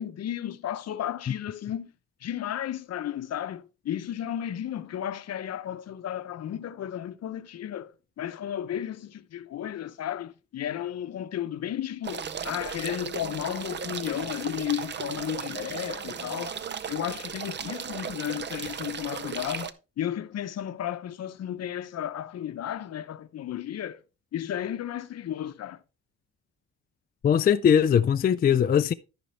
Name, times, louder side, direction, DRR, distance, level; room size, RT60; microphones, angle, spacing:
voice 1, 0.0-1.9 2.2-24.0 24.3-25.8, left 10 dB, 60° left, 0.7 m, -33 dB
sound 1, 12.0-19.7, right 7 dB, 35° right, 0.6 m, -36 dB
voice 2, 27.2-28.9, left 8 dB, 30° left, 0.4 m, -20 dB
13.0 x 5.2 x 3.2 m
cardioid pair, 90°, 30 cm